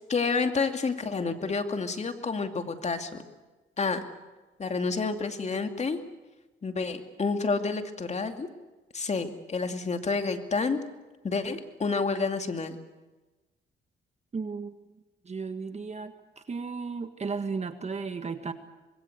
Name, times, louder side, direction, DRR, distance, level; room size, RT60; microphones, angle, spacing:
voice 1, 0.1-3.2 3.8-4.0 4.6-6.0 6.6-8.5 8.9-10.8 11.2-12.8, left 4 dB, 35° left, 6 dB, 2.5 m, -29 dB
voice 2, 14.3-14.7 15.3-18.5, right 4 dB, 35° right, 8 dB, 1.6 m, -34 dB
25.5 x 21.0 x 8.1 m, 1.2 s
cardioid pair, 90°, 20 cm